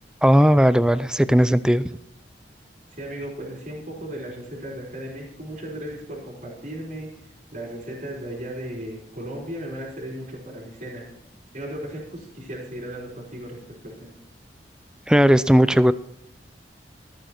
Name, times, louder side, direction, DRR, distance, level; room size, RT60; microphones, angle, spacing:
voice 1, 0.2-1.9 15.1-15.9, equal, 5° right, 15 dB, 0.5 m, -17 dB
voice 2, 3.0-7.1 7.5-11.0 11.5-14.1, right 1 dB, 45° right, -3 dB, 4.0 m, -36 dB
14.0 x 9.1 x 4.4 m, 0.79 s
head